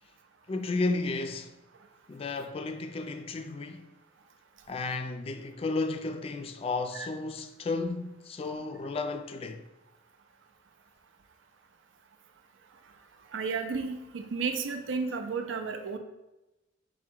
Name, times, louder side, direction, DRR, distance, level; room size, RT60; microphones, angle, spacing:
voice 1, 0.5-1.5 2.1-3.9 4.7-9.6, left 3 dB, 30° left, 0.3 m, -33 dB
voice 2, 13.3-16.0, right 5 dB, 85° right, 0.5 m, -32 dB
4.7 x 2.1 x 4.4 m
head